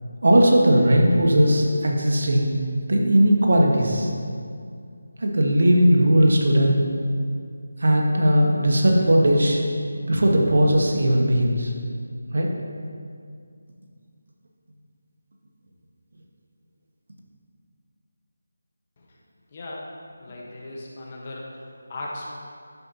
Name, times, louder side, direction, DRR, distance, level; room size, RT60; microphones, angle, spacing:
voice 1, 0.2-2.5 2.9-4.1 5.2-6.8 7.8-9.6 10.1-11.7 12.3-12.5, equal, 65° right, 0 dB, 1.6 m, -18 dB
voice 2, 19.5-19.9 20.2-21.5 21.9-22.4, left 2 dB, 30° left, -3 dB, 1.3 m, -36 dB
11.0 x 9.6 x 3.0 m, 2.3 s
figure-of-eight pair, 175°, 0 cm